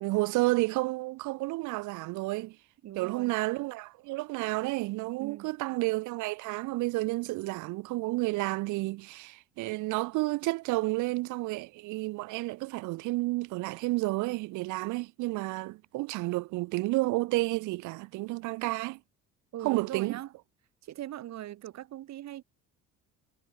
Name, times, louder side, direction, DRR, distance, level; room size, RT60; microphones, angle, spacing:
voice 1, 0.0-2.6 3.0-19.0 19.6-20.2, right 21 dB, 75° right, 0.9 m, -31 dB
voice 2, 2.8-3.3 5.2-5.5 19.5-20.3 20.8-22.4, right 13 dB, 60° right, 3.7 m, -40 dB
cardioid pair, 105°, 30 cm